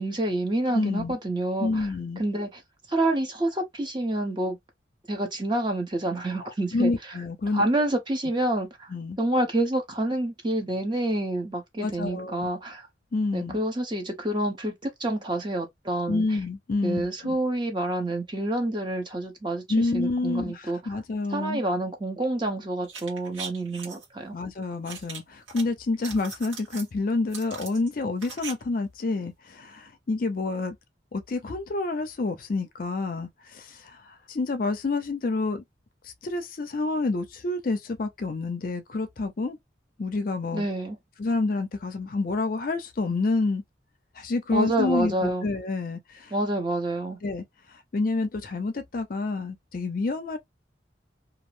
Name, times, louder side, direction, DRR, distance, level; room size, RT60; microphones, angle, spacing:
voice 1, 0.0-1.9 2.2-2.6 2.9-4.6 5.1-6.9 7.5-12.9 13.3-16.2 16.8-19.6 19.9-21.0 21.3-24.4 40.5-41.0 44.5-45.4 46.3-47.2, right 1 dB, 25° right, 0.7 m, -28 dB
voice 2, 0.7-1.2 1.6-2.2 6.7-7.6 8.9-9.2 11.8-12.5 13.1-13.6 16.1-17.4 19.7-21.6 24.3-30.8 31.1-35.6 36.2-39.6 40.0-40.7 41.2-43.6 44.2-46.3 47.2-47.4 47.9-50.4, left 3 dB, 45° left, 0.4 m, -28 dB
sound 1, 22.8-24.1 24.9-25.6 25.9-26.9 27.3-28.5 28.8-28.9, right 5 dB, 85° right, 1.0 m, -40 dB
2.4 x 2.0 x 3.1 m
head